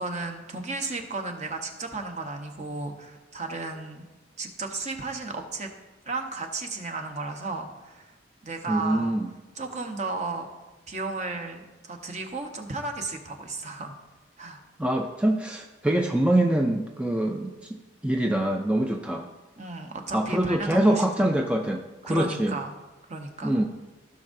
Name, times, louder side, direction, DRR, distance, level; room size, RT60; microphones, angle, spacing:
voice 1, 0.0-4.0 4.4-5.7 6.1-8.1 8.4-9.2 9.6-10.5 10.9-13.9 14.4-14.6 19.6-21.3 22.0-22.8 23.1-23.5, right 3 dB, 35° right, 4 dB, 0.9 m, -34 dB
voice 2, 8.7-9.3 14.8-17.8 18.0-19.3 20.1-22.6 23.4-23.7, right 1 dB, 5° right, 2 dB, 0.4 m, -24 dB
16.0 x 6.2 x 2.6 m, 1.2 s
head